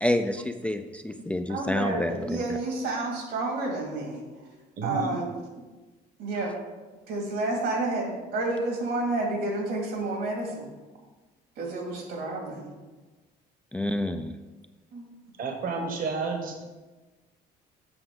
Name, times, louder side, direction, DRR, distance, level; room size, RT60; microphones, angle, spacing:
voice 1, 0.0-2.4 13.7-14.4, left 1 dB, 5° left, 6 dB, 0.3 m, -28 dB
voice 2, 1.5-4.2 4.8-5.3 6.2-6.5 7.1-10.7 11.6-12.7 14.9-15.1, right 2 dB, 80° right, 0 dB, 2.4 m, -30 dB
voice 3, 4.8-5.3 15.4-16.6, right 4 dB, 55° right, 3 dB, 1.2 m, -31 dB
7.9 x 5.9 x 3.9 m, 1.2 s
cardioid pair, 110°, 17 cm